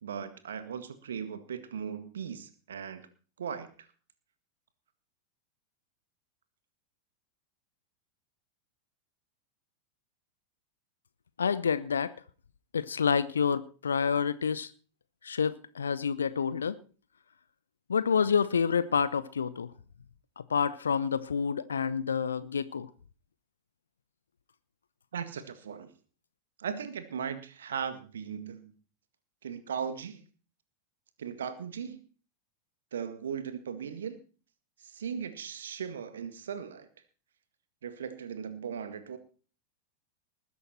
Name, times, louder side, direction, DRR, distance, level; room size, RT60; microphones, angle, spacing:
voice 1, 0.0-3.1 3.4-3.7 25.1-25.9 26.6-28.8 29.4-30.2 31.2-32.0 32.9-34.2 34.8-36.9 37.8-39.2, right 7 dB, 65° right, 1.8 m, -38 dB
voice 2, 11.4-12.1 12.7-14.7 15.2-16.8 17.9-19.7 20.5-22.9, left 6 dB, 70° left, 0.7 m, -28 dB
20.0 x 10.5 x 4.4 m
figure-of-eight pair, 90°, 0 cm